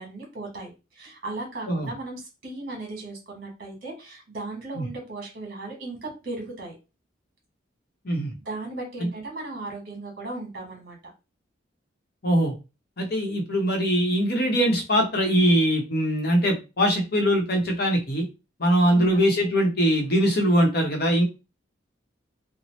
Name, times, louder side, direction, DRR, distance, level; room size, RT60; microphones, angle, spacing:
voice 1, 0.0-6.7 8.4-11.0 18.9-19.2, right 2 dB, 50° right, 1 dB, 1.2 m, -36 dB
voice 2, 12.2-12.6 13.0-18.2 18.6-21.2, equal, 55° left, 2 dB, 0.8 m, -22 dB
2.8 x 2.0 x 3.1 m, 0.28 s
head